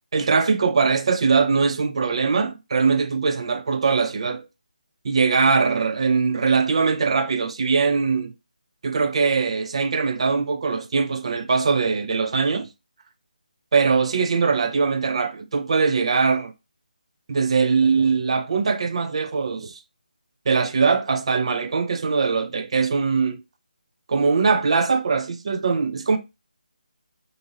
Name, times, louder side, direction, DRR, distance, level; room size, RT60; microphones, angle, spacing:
voice 1, 0.1-4.5 5.0-8.3 8.8-12.7 13.7-16.5 17.3-19.8 20.5-23.4 24.1-26.2, right 5 dB, 40° right, 0.4 m, -21 dB
2.6 x 2.6 x 2.7 m
figure-of-eight pair, 150°, 5 cm